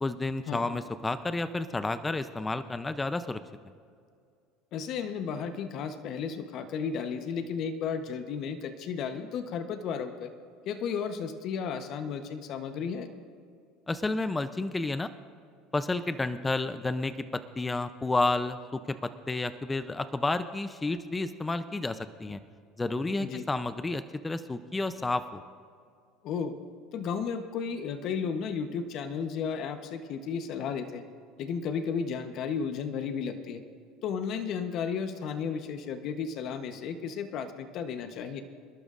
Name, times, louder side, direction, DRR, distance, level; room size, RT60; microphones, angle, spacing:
voice 1, 0.0-3.4 13.9-15.1 15.7-22.4 22.8-25.4, left 2 dB, 15° left, 11 dB, 0.5 m, -31 dB
voice 2, 4.7-10.3 10.7-13.1 23.2-23.4 26.2-26.6 26.9-31.0 31.4-33.6 34.0-38.4, left 6 dB, 55° left, 8 dB, 1.0 m, -33 dB
27.5 x 12.0 x 2.5 m, 2.2 s
supercardioid pair, 105°, 0 cm